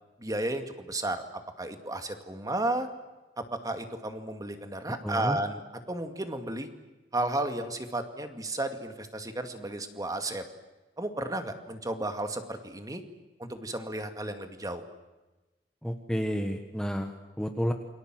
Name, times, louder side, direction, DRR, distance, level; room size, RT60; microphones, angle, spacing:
voice 1, 0.2-2.9 3.4-5.6 5.9-6.7 7.1-10.4 11.0-13.0 13.4-14.8, right 2 dB, 20° right, 7 dB, 2.3 m, -33 dB
voice 2, 5.0-5.4 15.8-17.7, equal, 5° left, 5 dB, 1.4 m, -31 dB
28.5 x 24.0 x 7.7 m, 1.1 s
head